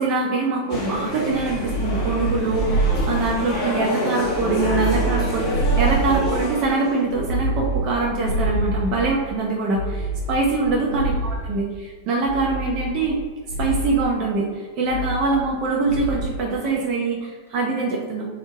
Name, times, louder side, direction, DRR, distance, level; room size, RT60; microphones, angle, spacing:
voice 1, 0.0-13.2 13.6-18.3, right 3 dB, 40° right, -2 dB, 0.4 m, -23 dB
sound 1, 0.7-7.1, equal, 40° left, 0.8 m, -28 dB
sound 2, 1.2-3.7 4.1-6.6 7.1-9.2 9.7-11.6 12.2-13.2 13.5-14.0 14.8-15.6 15.9-16.3, right 2 dB, 80° right, 0.7 m, -26 dB
2.4 x 2.0 x 3.2 m, 1.4 s
figure-of-eight pair, 90°, 0 cm